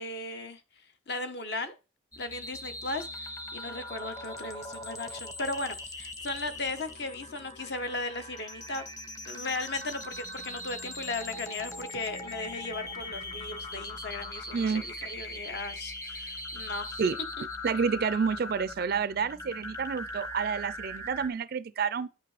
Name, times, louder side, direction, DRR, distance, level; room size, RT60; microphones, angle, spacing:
voice 1, 0.0-1.7 2.2-8.8 9.3-17.0, left 2 dB, 55° left, 1.0 m, -37 dB
sound 1, 2.1-21.3, left 1 dB, 15° left, 0.9 m, -40 dB
voice 2, 17.6-22.1, right 6 dB, 50° right, 0.3 m, -29 dB
9.4 x 5.9 x 3.2 m
head